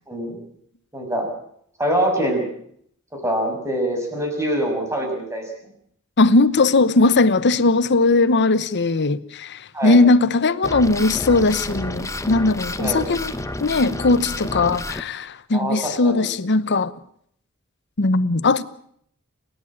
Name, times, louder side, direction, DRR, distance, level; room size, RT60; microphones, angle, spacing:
voice 1, 0.1-0.4 0.9-1.3 1.8-2.4 3.1-5.4 9.7-10.0 12.8-13.1 15.5-16.3, right 1 dB, 15° right, 6.3 m, -24 dB
voice 2, 6.2-13.3 13.6-16.9 18.0-18.6, left 3 dB, 55° left, 0.9 m, -18 dB
sound 1, 10.6-15.0, left 1 dB, 15° left, 1.0 m, -30 dB
29.5 x 11.0 x 8.6 m
head